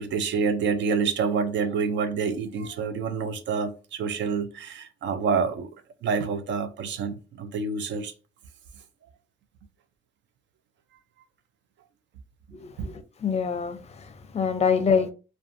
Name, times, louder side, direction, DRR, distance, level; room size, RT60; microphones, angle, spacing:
voice 1, 0.0-5.7 6.0-8.1 12.8-12.9, right 5 dB, 65° right, 0.5 m, -27 dB
voice 2, 12.5-15.1, left 6 dB, 35° left, 0.5 m, -26 dB
2.5 x 2.3 x 2.5 m
cardioid pair, 90°, 20 cm